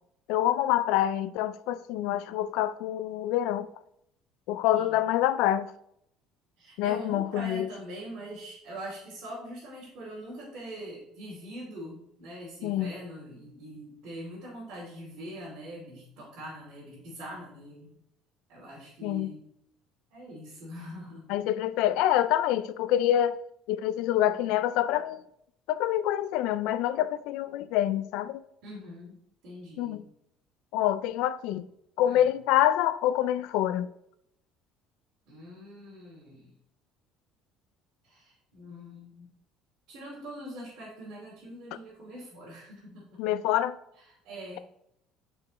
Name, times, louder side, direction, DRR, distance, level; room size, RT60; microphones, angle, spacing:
voice 1, 0.3-3.7 4.5-5.7 6.8-7.7 12.6-12.9 19.0-19.3 21.3-23.4 23.7-25.2 25.7-28.4 29.8-30.0 30.7-31.7 32.0-33.9 43.2-43.8, left 12 dB, 75° left, 0.4 m, -26 dB
voice 2, 6.6-17.9 18.5-19.4 20.1-21.4 28.6-30.0 32.0-32.3 35.3-36.5 38.0-39.3 39.9-43.2 44.0-44.6, equal, 60° right, 2.8 m, -43 dB
11.5 x 4.5 x 3.2 m
cardioid pair, 165°, 0 cm